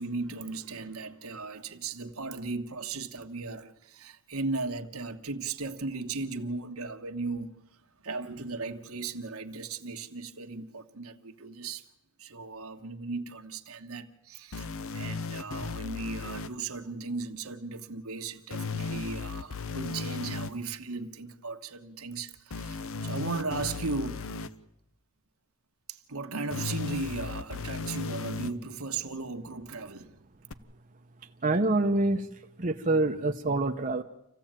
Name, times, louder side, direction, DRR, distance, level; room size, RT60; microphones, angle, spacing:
voice 1, 0.0-11.9 12.2-24.3 25.9-30.2, right 3 dB, 70° right, 1.5 m, -37 dB
sound 1, 14.5-16.5 18.5-20.5 22.5-24.5 26.5-28.5 30.5-30.6, left 4 dB, 65° left, 0.9 m, -35 dB
voice 2, 31.4-32.3 32.6-34.0, right 2 dB, 35° right, 0.9 m, -26 dB
27.0 x 15.5 x 9.0 m
head